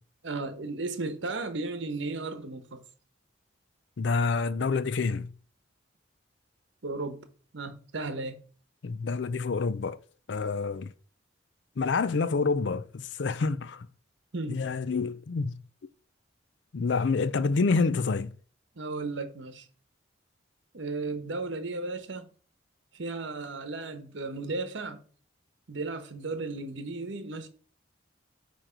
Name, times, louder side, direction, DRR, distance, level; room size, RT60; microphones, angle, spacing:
voice 1, 0.2-2.8 6.8-7.2 7.5-8.4 14.3-14.7 18.8-19.6 20.7-22.3 22.9-25.0 25.7-27.5, right 3 dB, 70° right, 1.0 m, -35 dB
voice 2, 4.0-5.3 8.8-10.0 10.3-10.9 11.8-13.9 14.5-15.6 16.7-18.3, left 4 dB, 60° left, 0.5 m, -27 dB
8.8 x 3.1 x 5.0 m
head